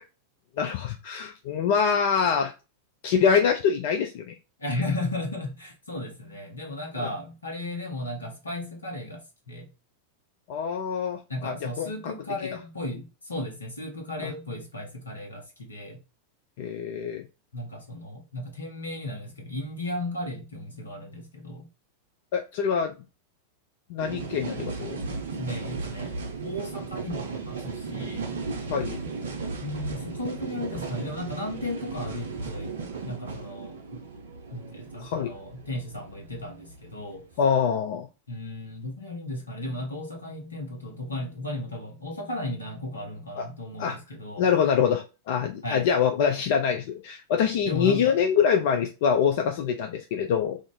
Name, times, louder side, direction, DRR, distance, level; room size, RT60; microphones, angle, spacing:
voice 1, 0.6-2.5 3.0-4.3 7.0-7.1 10.5-12.1 14.2-14.3 16.6-17.2 22.3-22.9 23.9-25.0 28.7-29.0 35.0-35.3 37.4-38.1 43.4-43.5 43.8-44.0 44.4-50.6, left 7 dB, 50° left, 0.4 m, -25 dB
voice 2, 4.6-9.7 11.3-16.0 17.5-21.7 25.4-28.3 29.6-32.7 33.0-34.0 34.5-37.2 38.3-44.5 45.6-45.9 47.6-48.1, left 1 dB, 75° left, 1.0 m, -35 dB
sound 1, 24.0-37.5, right 4 dB, 60° right, 0.5 m, -36 dB
2.5 x 2.4 x 3.8 m
figure-of-eight pair, 90°, 0 cm